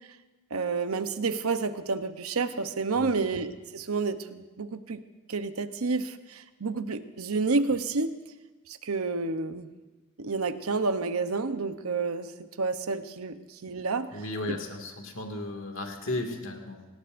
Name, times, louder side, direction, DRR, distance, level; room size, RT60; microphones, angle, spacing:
voice 1, 0.5-5.0 5.3-8.2 8.7-9.7 10.2-12.3 12.6-14.1 14.5-14.6, right 4 dB, 90° right, 9 dB, 0.9 m, -30 dB
voice 2, 2.9-3.3 14.1-16.9, left 2 dB, 65° left, 2 dB, 2.2 m, -35 dB
25.0 x 18.5 x 2.6 m, 1.2 s
head